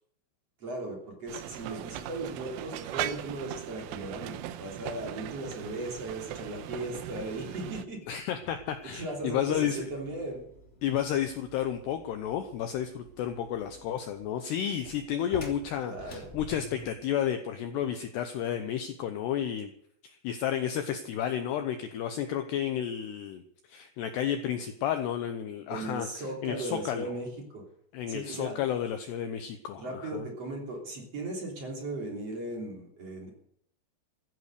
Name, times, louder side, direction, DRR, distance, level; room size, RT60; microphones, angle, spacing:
voice 1, 0.6-8.0 8.8-10.5 15.9-16.3 25.7-27.3 27.5-27.6 28.1-28.6 29.8-33.3, right 2 dB, 35° right, 0 dB, 3.7 m, -37 dB
sound 1, 1.3-7.8, right 12 dB, 80° right, 3.2 m, -39 dB
sound 2, 7.1-17.0, left 1 dB, 15° left, 3.0 m, -51 dB
voice 2, 8.1-9.9 10.8-19.7 20.0-23.4 23.7-27.2 27.9-30.3, left 9 dB, 80° left, 8 dB, 2.4 m, -32 dB
15.5 x 11.5 x 6.7 m, 0.68 s
omnidirectional pair, 5.9 m